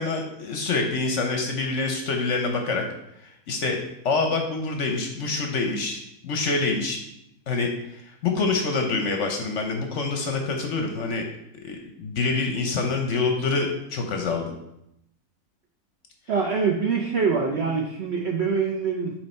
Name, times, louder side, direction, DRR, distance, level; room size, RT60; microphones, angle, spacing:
voice 1, 0.0-2.8 3.2-3.8 4.0-7.0 7.5-11.2 11.6-14.5, left 3 dB, 60° left, 3 dB, 0.9 m, -26 dB
voice 2, 16.3-19.1, right 5 dB, 65° right, 0 dB, 0.6 m, -24 dB
7.2 x 3.1 x 4.2 m, 0.81 s
omnidirectional pair, 1.7 m